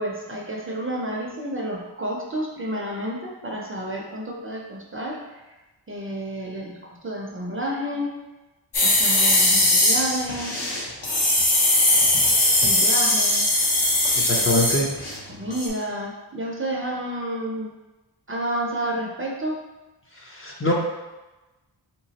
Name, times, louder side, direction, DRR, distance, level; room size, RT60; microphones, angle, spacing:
voice 1, 0.0-5.2 5.9-6.8 7.0-8.1 8.8-10.5 12.6-13.5 15.3-17.7 18.3-19.6, right 1 dB, 30° right, -2 dB, 0.5 m, -30 dB
sound 1, 8.7-15.2 15.5-15.7, left 1 dB, 60° left, 1.0 m, -20 dB
voice 2, 14.1-14.9 20.2-20.7, left 1 dB, 30° left, -2 dB, 0.6 m, -24 dB
3.5 x 3.0 x 2.8 m, 1.1 s
wide cardioid pair, 95°, 46 cm